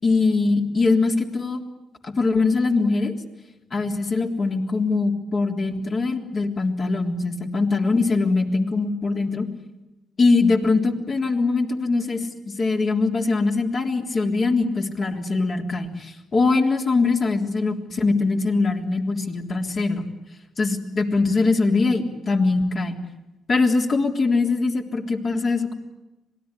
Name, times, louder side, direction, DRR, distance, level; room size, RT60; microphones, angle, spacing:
voice 1, 0.0-1.6 2.0-3.1 3.7-9.5 10.2-12.3 12.6-20.0 20.6-23.0 23.5-25.7, left 3 dB, 45° left, 4 dB, 3.6 m, -22 dB
26.0 x 19.5 x 9.9 m, 1.0 s
cardioid pair, 90°, 0 cm